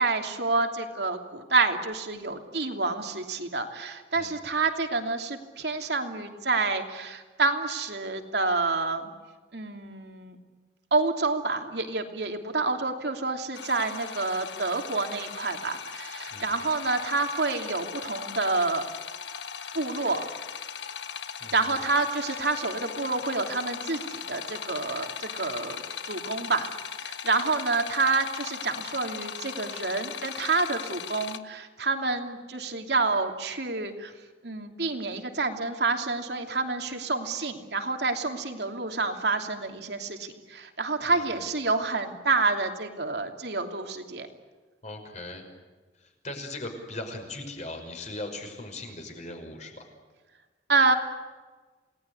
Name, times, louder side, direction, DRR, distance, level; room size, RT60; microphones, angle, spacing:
voice 1, 0.0-9.1 9.5-10.4 10.9-18.8 19.7-20.2 21.5-26.7 27.0-34.1 34.4-44.3 50.7-50.9, right 3 dB, 65° right, 5 dB, 3.0 m, -28 dB
sound 1, 13.5-31.4, left 7 dB, 85° left, 1.5 m, -38 dB
voice 2, 21.4-21.7 41.1-41.2 44.8-45.4 46.2-49.8, left 2 dB, 40° left, 4 dB, 5.7 m, -39 dB
29.0 x 19.0 x 9.9 m, 1.3 s
head